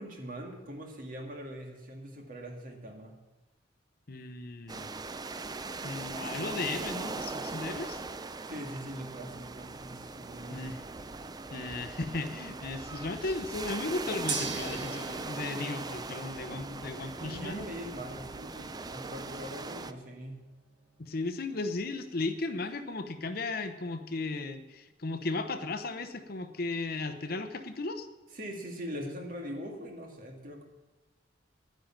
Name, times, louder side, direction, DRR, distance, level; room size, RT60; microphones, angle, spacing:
voice 1, 0.0-3.1 8.5-10.7 17.2-20.4 28.3-30.6, equal, 45° right, 2 dB, 2.2 m, -42 dB
voice 2, 4.1-4.9 5.8-8.0 10.5-10.8 11.5-17.6 21.0-28.1, left 3 dB, 55° left, 10 dB, 0.8 m, -35 dB
sound 1, 4.7-19.9, right 3 dB, 20° right, 0.4 m, -40 dB
Gong, 14.3-24.5, right 5 dB, 65° right, 1.7 m, -45 dB
10.5 x 10.5 x 7.4 m, 1.1 s
head